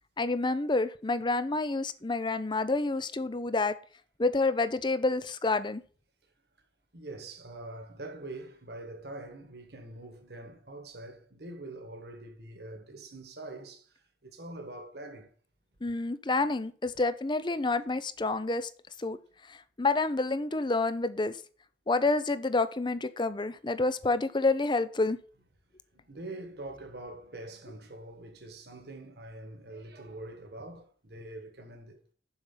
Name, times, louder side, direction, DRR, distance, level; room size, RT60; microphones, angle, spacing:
voice 1, 0.2-3.7 4.2-5.8 15.8-18.7 19.0-19.2 19.5-21.3 21.9-25.2, left 3 dB, 25° left, 0.6 m, -28 dB
voice 2, 6.9-15.3 25.9-32.0, right 2 dB, 65° right, 1.5 m, -44 dB
7.2 x 5.3 x 7.3 m
head